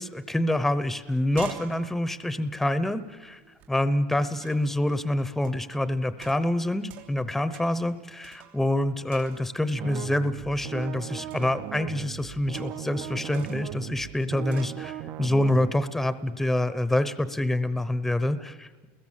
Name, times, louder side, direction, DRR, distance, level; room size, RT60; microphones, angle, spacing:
voice 1, 0.0-3.4 3.7-18.9, left 1 dB, 5° left, 14 dB, 0.8 m, -26 dB
sound 1, 0.6-0.7 1.0-3.7 4.4-4.8 5.4-5.7 6.2-7.3 7.5-7.9 8.2-8.8 9.1-9.7 11.3-11.7 12.5-13.0 13.3-13.8 14.5-14.8, right 10 dB, 85° right, 3.2 m, -47 dB
sound 2, 9.8-15.7, right 12 dB, 50° right, 0.7 m, -38 dB
29.5 x 21.0 x 7.4 m, 1.3 s
cardioid pair, 145°, 6 cm